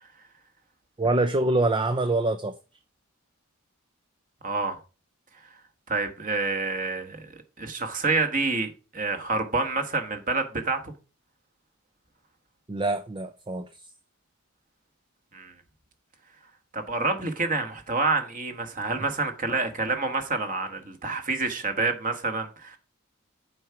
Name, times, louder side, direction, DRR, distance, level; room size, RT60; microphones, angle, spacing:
voice 1, 1.0-2.5 12.7-13.7, right 2 dB, 20° right, 0.4 m, -25 dB
voice 2, 4.4-4.8 5.9-7.3 7.6-10.9 15.3-15.5 16.7-22.8, right 3 dB, 40° right, 1.5 m, -28 dB
7.5 x 4.8 x 5.8 m
head